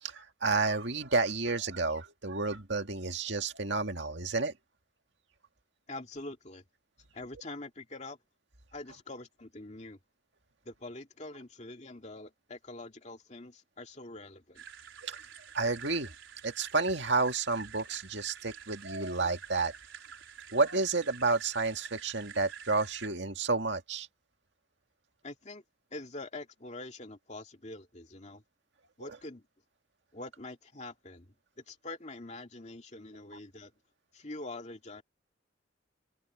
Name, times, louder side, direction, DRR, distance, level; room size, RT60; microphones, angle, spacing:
voice 1, 0.0-4.5 15.0-15.2 15.5-16.1 16.4-19.7 20.5-24.1, right 3 dB, 65° right, 2.1 m, -30 dB
voice 2, 5.9-6.6 7.1-8.2 8.7-10.0 10.6-14.6 25.2-25.6 25.9-28.4 29.0-29.4 30.1-33.7 34.1-35.0, left 2 dB, 35° left, 2.4 m, -45 dB
sound 1, 14.6-23.1, right 7 dB, 85° right, 4.3 m, -48 dB
head